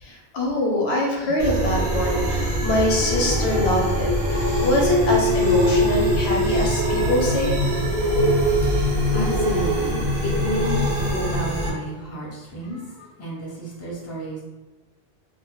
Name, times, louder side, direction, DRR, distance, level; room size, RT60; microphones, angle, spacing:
voice 1, 0.0-7.6, left 1 dB, 85° left, -2 dB, 0.9 m, -24 dB
sound 1, 1.4-11.7, equal, 55° right, 0.6 m, -22 dB
voice 2, 9.1-10.8 11.1-14.4, right 1 dB, 20° left, -6 dB, 0.6 m, -31 dB
2.1 x 2.1 x 2.8 m, 1.2 s
omnidirectional pair, 1.1 m